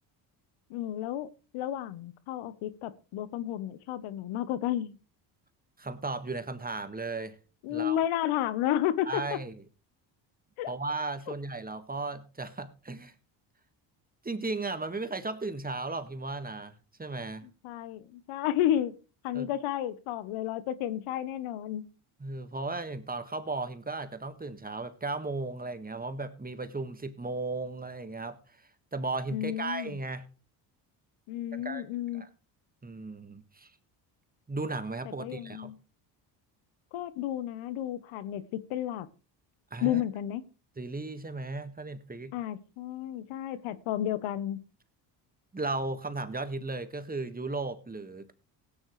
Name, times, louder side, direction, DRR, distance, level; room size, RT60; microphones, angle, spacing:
voice 1, 0.7-1.3 1.5-4.9 7.6-9.2 10.6-10.7 17.6-19.0 19.2-21.8 29.3-30.0 31.3-32.2 35.2-35.7 36.9-39.1 39.8-40.4 42.3-44.6, left 12 dB, 75° left, 15 dB, 1.1 m, -32 dB
voice 2, 5.8-7.4 7.7-8.0 9.1-9.5 10.7-13.1 14.2-17.5 19.3-19.5 22.2-28.4 28.9-30.3 31.6-31.8 32.1-32.3 32.8-33.7 34.5-35.7 39.7-40.0 40.8-42.3 45.5-48.3, right 3 dB, 15° right, 9 dB, 1.7 m, -35 dB
17.0 x 9.6 x 3.2 m, 0.34 s
supercardioid pair, 70°, 50 cm